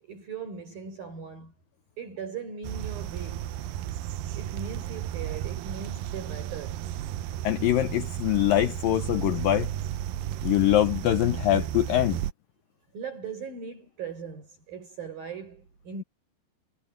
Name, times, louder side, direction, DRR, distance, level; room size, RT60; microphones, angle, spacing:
voice 1, 0.0-1.5 2.0-3.5 4.3-6.9 12.9-16.0, right 6 dB, 55° right, 8.5 m, -39 dB
sound 1, 2.6-12.3, right 12 dB, 85° right, 2.0 m, -33 dB
voice 2, 7.4-9.7 10.4-12.2, left 14 dB, 75° left, 2.0 m, -23 dB
omnidirectional pair, 5.1 m